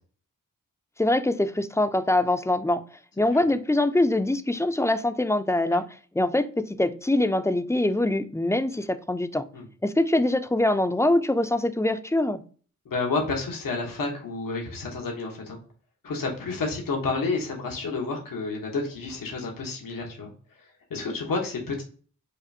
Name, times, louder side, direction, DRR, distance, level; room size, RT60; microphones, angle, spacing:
voice 1, 1.0-2.8 3.2-5.9 6.1-9.4 9.8-12.4, left 1 dB, 10° left, 0.4 m, -23 dB
voice 2, 12.8-15.6 16.0-20.3 20.6-21.8, left 3 dB, 90° left, 1.0 m, -30 dB
5.1 x 2.5 x 2.6 m
cardioid pair, 65°, 32 cm